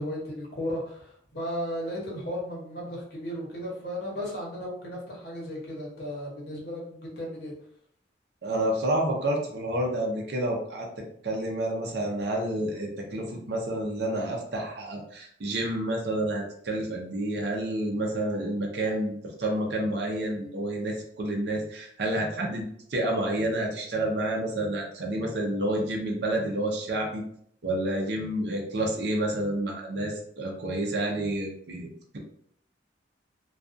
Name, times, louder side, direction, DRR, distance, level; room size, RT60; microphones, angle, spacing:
voice 1, 0.0-7.5, equal, 60° left, -3 dB, 0.9 m, -35 dB
voice 2, 8.4-19.1 19.4-27.2 27.6-32.2, right 1 dB, 65° right, 0 dB, 0.6 m, -29 dB
2.4 x 2.3 x 2.5 m, 0.65 s
head